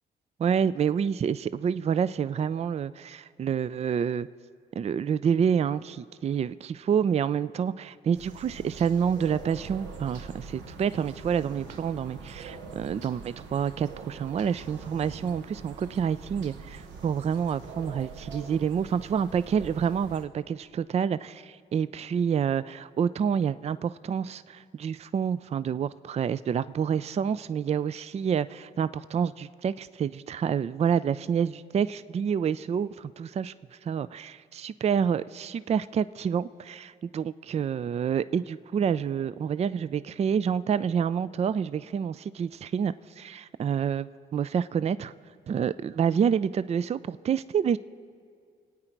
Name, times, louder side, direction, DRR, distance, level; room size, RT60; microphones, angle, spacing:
voice 1, 0.4-4.3 4.8-33.5 33.8-45.1 45.5-47.8, right 7 dB, 35° right, 16 dB, 0.4 m, -28 dB
sound 1, 8.1-20.3, right 4 dB, 85° right, 1.0 m, -44 dB
25.0 x 8.9 x 4.5 m, 2.2 s
supercardioid pair, 60°, 18 cm